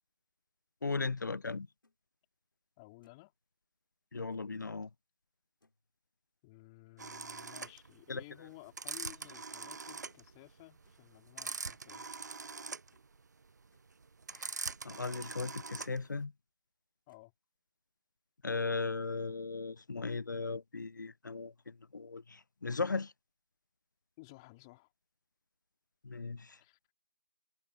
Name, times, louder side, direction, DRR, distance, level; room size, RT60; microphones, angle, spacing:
voice 1, 0.8-1.7 4.1-4.9 8.1-8.2 14.4-16.3 18.4-23.1 26.0-26.6, left 4 dB, 60° left, 0.6 m, -37 dB
sound 1, 1.8-2.0 2.5-2.6 3.0-3.3 4.3-4.5 5.6-5.9 7.6-7.8 8.5-8.7 9.3-9.5 10.1-10.3 10.8-11.0 12.4-12.5 12.9-13.2 13.5-13.9 14.4-14.5 14.9-15.2 15.5-15.9 17.1-17.3, left 2 dB, 80° left, 4.8 m, -73 dB
voice 2, 2.8-3.3 6.4-12.1 17.1-17.3 24.2-24.9 26.6-26.8, left 23 dB, 15° left, 3.2 m, -55 dB
sound 2, 7.0-16.2, right 4 dB, 55° right, 0.4 m, -43 dB
figure-of-eight pair, 165°, 11 cm